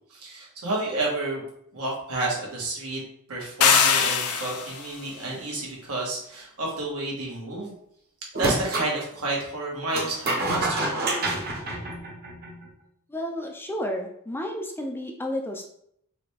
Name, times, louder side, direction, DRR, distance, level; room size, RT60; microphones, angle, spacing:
voice 1, 0.1-1.4 1.7-3.0 3.3-7.7 8.4-10.9, right 2 dB, 85° right, -3 dB, 1.6 m, -30 dB
sound 1, 3.6-4.9, left 6 dB, 85° left, 0.6 m, -21 dB
sound 2, 8.3-8.9 9.9-12.6, right 2 dB, 45° right, 0.8 m, -28 dB
voice 2, 13.1-15.7, left 1 dB, 10° left, 2 dB, 0.4 m, -31 dB
4.0 x 3.3 x 3.3 m, 0.71 s
head